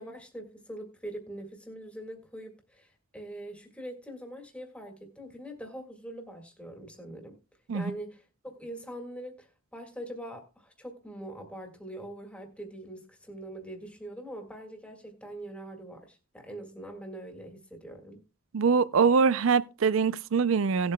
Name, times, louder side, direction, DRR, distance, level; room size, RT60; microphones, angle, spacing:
voice 1, 0.0-7.4 7.7-18.2, right 1 dB, 5° left, 1.8 m, -43 dB
voice 2, 18.5-20.9, right 5 dB, 60° right, 0.4 m, -23 dB
18.0 x 7.8 x 2.2 m
head